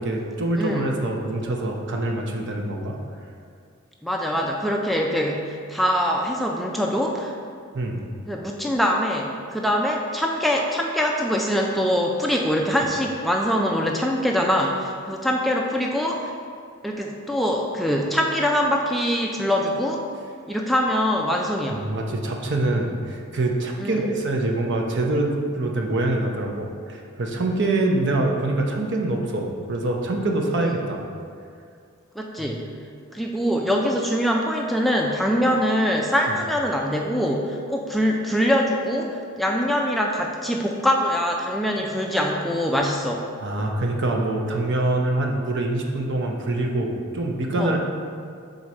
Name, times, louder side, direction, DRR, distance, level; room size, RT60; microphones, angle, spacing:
voice 1, 0.0-3.0 7.7-8.0 21.7-31.0 32.4-32.6 43.4-47.8, right 2 dB, 60° right, 1 dB, 0.7 m, -25 dB
voice 2, 0.5-0.9 4.0-7.3 8.3-16.3 16.8-20.0 20.5-21.8 23.8-24.0 30.6-30.7 32.2-32.6 33.1-43.2 47.6-47.8, equal, ahead, -1 dB, 0.3 m, -23 dB
6.2 x 3.9 x 4.2 m, 2.2 s
head